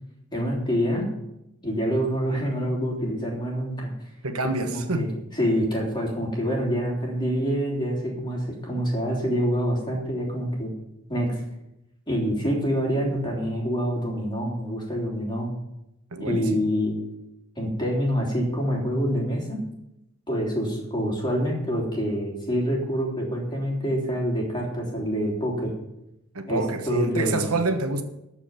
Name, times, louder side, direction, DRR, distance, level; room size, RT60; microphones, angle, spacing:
voice 1, 0.3-1.1 1.6-4.1 4.7-5.1 5.3-10.7 11.1-11.4 12.1-15.5 16.2-17.0 17.6-19.6 20.3-25.7 26.5-27.6, equal, 20° left, 3.4 m, -26 dB
voice 2, 4.2-5.2 16.1-16.7 26.3-28.0, right 3 dB, 80° right, 1.2 m, -27 dB
13.5 x 5.0 x 8.9 m
head